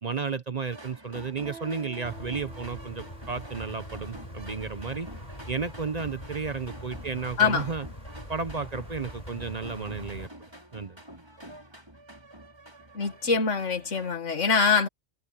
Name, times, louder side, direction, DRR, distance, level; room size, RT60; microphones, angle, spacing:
voice 1, 0.0-5.1 5.5-7.9 8.3-10.3 10.7-11.0, right 5 dB, 40° right, 0.8 m, -33 dB
sound 1, 0.6-14.2, right 1 dB, 20° right, 5.3 m, -48 dB
Guitar, 1.4-6.9, right 4 dB, 60° right, 7.9 m, -51 dB
sound 2, 2.0-10.3, left 1 dB, 30° left, 5.8 m, -43 dB
voice 2, 7.4-7.7 12.9-14.9, left 5 dB, 80° left, 2.0 m, -24 dB
omnidirectional pair, 1.2 m